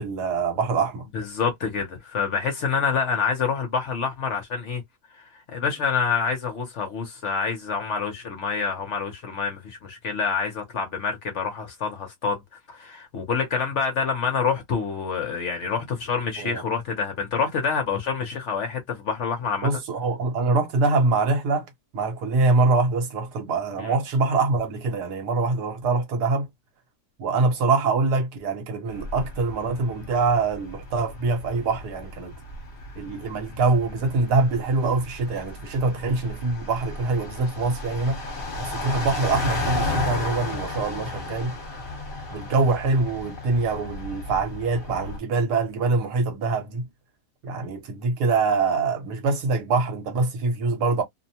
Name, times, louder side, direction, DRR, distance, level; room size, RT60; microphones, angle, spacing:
voice 1, 0.0-1.1 16.4-16.6 19.6-21.7 21.9-26.5 27.2-32.3 32.9-38.2 38.6-41.5 42.3-46.9 47.4-51.0, right 3 dB, 80° right, 1.4 m, -24 dB
voice 2, 1.1-4.8 5.2-12.4 12.7-19.7 23.8-23.9, left 6 dB, 60° left, 0.9 m, -27 dB
sound 1, 28.9-45.2, left 2 dB, 35° left, 1.1 m, -34 dB
2.9 x 2.1 x 2.7 m
omnidirectional pair, 1.7 m